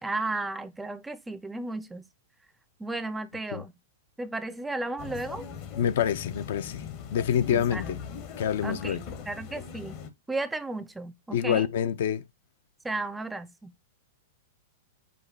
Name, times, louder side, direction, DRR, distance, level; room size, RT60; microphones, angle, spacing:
voice 1, 0.0-2.0 2.8-3.7 4.2-5.5 7.5-7.9 8.6-10.0 10.3-11.7 12.8-13.7, right 2 dB, 10° right, 0.4 m, -34 dB
sound 1, 5.0-10.1, left 7 dB, 45° left, 0.8 m, -40 dB
voice 2, 5.8-6.8 7.1-8.0 8.4-9.0 11.3-12.2, left 9 dB, 70° left, 0.4 m, -26 dB
5.0 x 2.2 x 4.1 m
hypercardioid pair, 130°, 0 cm